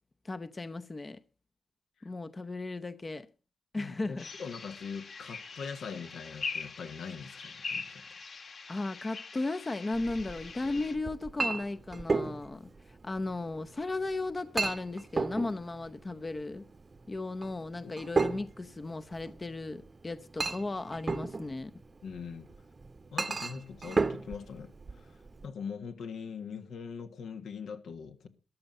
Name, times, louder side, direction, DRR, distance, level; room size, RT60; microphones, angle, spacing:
voice 1, 0.2-1.2 2.0-3.3 3.7-4.3 8.7-16.6 17.1-21.7, left 2 dB, 30° left, 0.7 m, -36 dB
voice 2, 3.8-8.1 17.8-17.9 22.0-22.5 23.1-28.3, left 6 dB, 80° left, 1.6 m, -42 dB
sound 1, 4.2-10.9, left 4 dB, 60° left, 2.4 m, -42 dB
Chink clink, 9.9-25.5, right 3 dB, 35° right, 0.8 m, -36 dB
13.5 x 11.0 x 5.4 m
cardioid pair, 70°, 0 cm